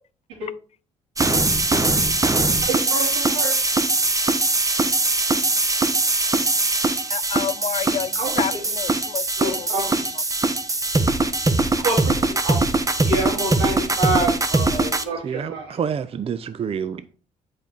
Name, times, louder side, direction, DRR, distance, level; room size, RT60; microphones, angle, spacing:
sound 1, 1.2-15.0, right 2 dB, 20° right, 1.1 m, -21 dB
voice 1, 1.7-2.1 2.4-3.5 8.1-8.7 9.4-10.1 11.8-12.2 12.4-12.7 13.0-15.8, right 2 dB, 85° right, 3.2 m, -27 dB
voice 2, 7.1-8.1 8.4-9.6, left 8 dB, 45° left, 0.4 m, -29 dB
voice 3, 15.2-17.1, right 7 dB, 40° right, 0.5 m, -28 dB
8.2 x 5.1 x 4.3 m
hypercardioid pair, 50°, 15 cm